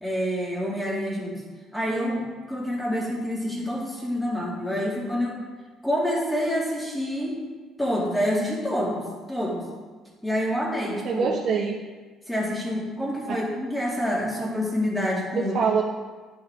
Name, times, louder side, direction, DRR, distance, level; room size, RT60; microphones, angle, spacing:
voice 1, 0.0-1.4 1.7-5.4 5.8-7.4 7.8-9.7 10.2-11.3 12.3-15.5, equal, 5° left, -4 dB, 2.3 m, -27 dB
voice 2, 11.0-11.8 13.3-13.4 15.3-15.8, right 6 dB, 60° right, -1 dB, 0.8 m, -24 dB
10.5 x 5.5 x 3.6 m, 1.4 s
cardioid pair, 115°, 0 cm